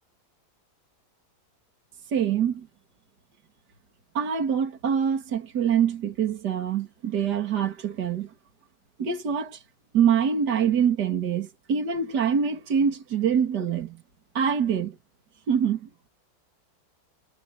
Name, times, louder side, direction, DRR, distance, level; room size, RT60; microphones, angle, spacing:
voice 1, 2.1-2.7 4.1-8.3 9.0-9.6 9.9-14.0 14.3-15.0 15.5-15.9, right 7 dB, 55° right, 2.7 m, -25 dB
omnidirectional pair, 2.1 m